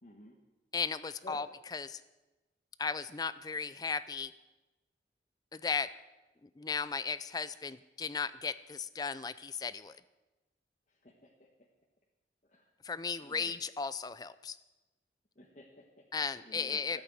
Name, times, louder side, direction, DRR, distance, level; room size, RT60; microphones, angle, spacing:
voice 1, 0.0-0.4 1.2-1.4 10.9-11.5 12.5-12.7 13.2-13.5 15.3-17.0, left 1 dB, 40° left, -1 dB, 1.3 m, -53 dB
voice 2, 0.7-1.5 1.7-2.0 2.8-4.3 5.5-5.9 6.6-10.0 12.8-14.6 16.1-17.0, left 5 dB, 20° left, 15 dB, 0.4 m, -36 dB
13.5 x 8.7 x 8.9 m, 1.1 s
head